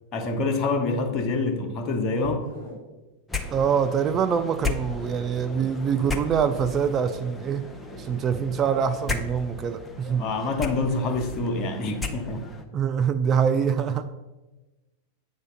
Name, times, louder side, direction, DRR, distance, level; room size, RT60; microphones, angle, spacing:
voice 1, 0.1-2.5 10.2-12.4, left 3 dB, 30° left, 3 dB, 1.0 m, -26 dB
sound 1, 1.5-2.8 4.8-7.1 7.8-8.4 9.0-9.1, left 1 dB, 75° right, 2.5 m, -43 dB
sound 2, 3.3-12.6, left 3 dB, 10° left, 0.7 m, -35 dB
voice 2, 3.5-7.6 8.0-10.3 12.7-14.1, right 7 dB, 30° right, 10 dB, 0.3 m, -24 dB
8.1 x 3.3 x 5.6 m, 1.1 s
figure-of-eight pair, 90°, 0 cm